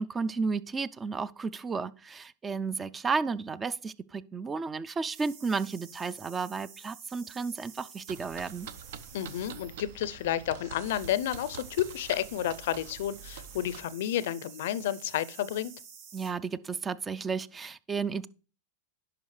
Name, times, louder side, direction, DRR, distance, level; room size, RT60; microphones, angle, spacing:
voice 1, 0.0-8.7 16.1-18.3, right 4 dB, 20° right, 0.4 m, -33 dB
sound 1, 5.1-16.3, right 7 dB, 50° right, 2.8 m, -50 dB
sound 2, 8.1-13.8, right 7 dB, 65° right, 0.6 m, -46 dB
voice 2, 9.1-15.7, left 11 dB, 65° left, 0.4 m, -31 dB
10.5 x 4.9 x 3.2 m
hypercardioid pair, 105°, 0 cm